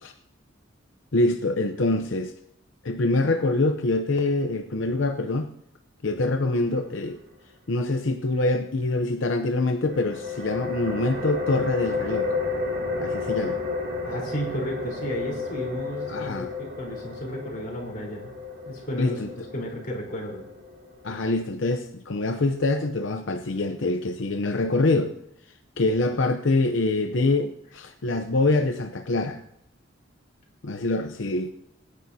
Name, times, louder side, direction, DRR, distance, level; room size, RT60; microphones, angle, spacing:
voice 1, 1.1-2.3 2.8-5.5 6.0-7.2 7.7-12.4 13.0-13.6 16.1-16.5 19.0-19.3 21.0-25.1 25.8-29.4 30.6-31.5, left 2 dB, 75° left, 6 dB, 0.7 m, -25 dB
sound 1, 9.8-21.2, left 3 dB, 55° right, 2.2 m, -32 dB
voice 2, 14.0-18.3 18.6-20.4, equal, 50° left, -2 dB, 4.0 m, -33 dB
24.0 x 10.0 x 2.8 m, 0.80 s
head